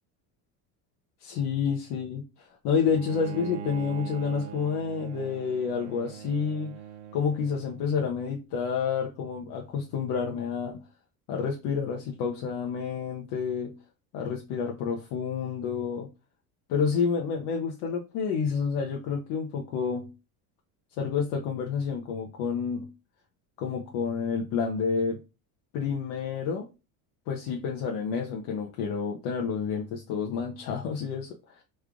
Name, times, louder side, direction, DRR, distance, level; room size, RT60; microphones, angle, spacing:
voice 1, 1.2-6.8 7.1-10.8 11.3-13.8 14.1-16.1 16.7-20.1 21.0-22.9 23.6-25.2 25.7-26.7 27.3-31.6, left 6 dB, 65° left, 0.8 m, -29 dB
Bowed string instrument, 2.9-8.1, right 8 dB, 90° right, 0.6 m, -41 dB
3.2 x 2.4 x 3.6 m
cardioid pair, 140°, 42 cm